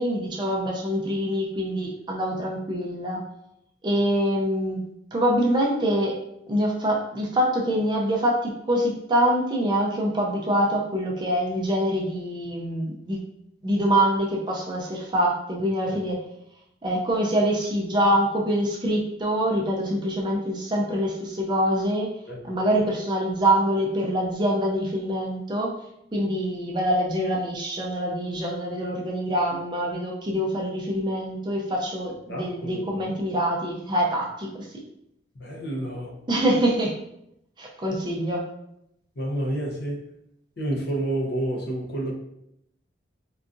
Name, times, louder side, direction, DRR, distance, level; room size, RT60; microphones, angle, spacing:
voice 1, 0.0-3.2 3.8-6.2 6.5-13.2 13.6-16.2 16.8-22.2 22.4-25.7 26.1-34.7 36.3-37.0 37.6-38.5, equal, 25° right, -2 dB, 0.4 m, -25 dB
voice 2, 22.3-22.7 32.3-33.0 35.3-36.2 39.2-40.1 40.6-42.1, right 1 dB, 65° left, -2 dB, 0.7 m, -30 dB
3.7 x 2.3 x 2.5 m, 0.79 s
head